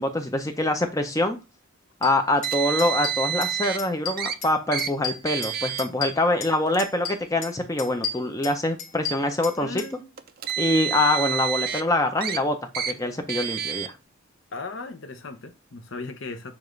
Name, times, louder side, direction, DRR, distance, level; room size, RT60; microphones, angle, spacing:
voice 1, 0.0-1.4 2.0-10.0 10.6-12.6 12.9-14.0, left 2 dB, 15° left, 0.5 m, -24 dB
sound 1, 2.0-2.1 2.4-2.5 2.8-3.5 3.8-4.5 4.8-6.5 6.8-7.5 7.8-9.9, left 5 dB, 80° left, 1.7 m, -33 dB
Car, 2.4-3.8 4.2-4.3 4.7-4.9 5.3-5.8 6.7-6.8 7.8-7.9 10.2-11.8 12.2-12.4 12.7-12.9 13.3-13.9, right 9 dB, 45° right, 0.4 m, -28 dB
voice 2, 9.6-10.1 14.5-16.5, left 3 dB, 60° left, 0.7 m, -37 dB
6.9 x 2.5 x 3.1 m
head